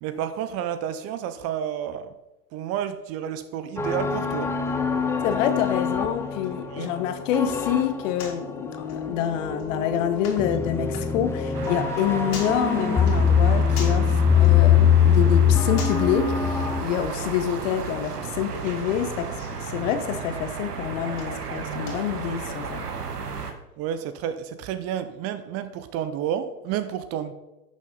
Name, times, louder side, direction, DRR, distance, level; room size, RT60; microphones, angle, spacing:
voice 1, 0.0-2.1 2.5-4.6 6.7-6.9 23.8-27.3, right 9 dB, 30° right, 0.6 m, -30 dB
sound 1, 3.8-16.8, left 7 dB, 5° left, 0.7 m, -23 dB
sound 2, 4.6-22.4, left 4 dB, 70° left, 3.0 m, -46 dB
voice 2, 5.2-19.3 19.6-22.8, left 9 dB, 50° left, 1.2 m, -27 dB
sound 3, 11.5-23.5, right 5 dB, 75° right, 1.3 m, -34 dB
11.5 x 6.5 x 4.0 m
figure-of-eight pair, 95°, 47 cm